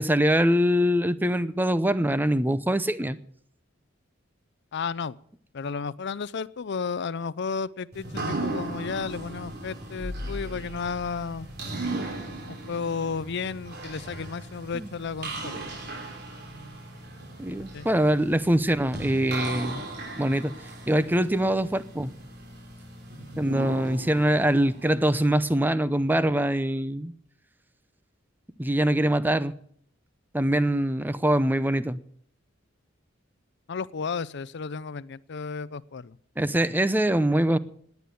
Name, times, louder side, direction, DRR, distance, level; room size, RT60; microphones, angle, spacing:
voice 1, 0.0-3.2 14.7-14.9 17.4-19.8 20.2-20.5 20.9-22.1 23.4-27.1 28.6-29.5 30.3-32.0 36.4-37.6, right 1 dB, 10° right, 0.7 m, -23 dB
voice 2, 4.7-5.1 5.5-11.5 12.5-15.6 17.7-17.9 33.7-36.2, left 5 dB, 60° left, 0.5 m, -33 dB
sound 1, 7.9-25.7, right 2 dB, 55° right, 3.7 m, -37 dB
18.5 x 9.5 x 6.9 m
head